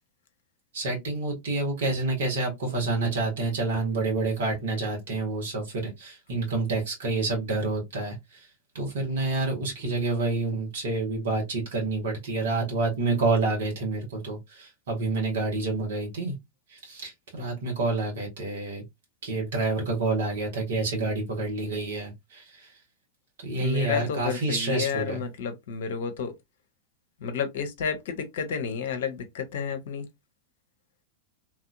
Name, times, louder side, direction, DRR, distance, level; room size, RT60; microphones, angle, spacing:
voice 1, 0.7-8.5 8.7-16.3 16.7-18.8 19.2-22.7 23.4-25.2, right 3 dB, 60° right, 1.5 m, -28 dB
voice 2, 23.6-26.3 27.2-30.1, left 7 dB, 55° left, 0.7 m, -31 dB
2.9 x 2.6 x 2.4 m
figure-of-eight pair, 90°, 0 cm